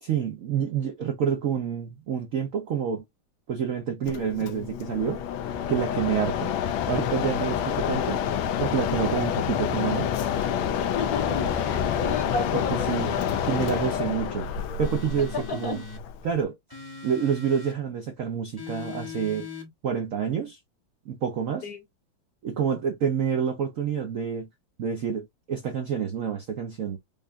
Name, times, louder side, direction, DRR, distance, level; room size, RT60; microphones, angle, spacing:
voice 1, 0.0-3.0 3.5-5.2 5.7-6.5 6.9-8.2 8.6-10.1 12.5-12.6 12.9-13.2 13.4-14.5 14.8-15.8 16.2-16.6 17.0-19.5 19.8-20.6 21.1-21.7 22.4-24.5 24.8-27.0, right 7 dB, 70° right, 0.8 m, -28 dB
Mechanisms, 4.0-16.4, left 9 dB, 80° left, 1.4 m, -28 dB
voice 2, 10.9-13.3 15.3-15.8 21.6-21.8, left 5 dB, 55° left, 1.3 m, -32 dB
sound 1, 11.1-12.1 12.9-14.1 14.8-16.0 16.7-17.8 18.6-19.7, left 3 dB, 20° left, 0.6 m, -40 dB
5.2 x 2.3 x 2.5 m
omnidirectional pair, 2.2 m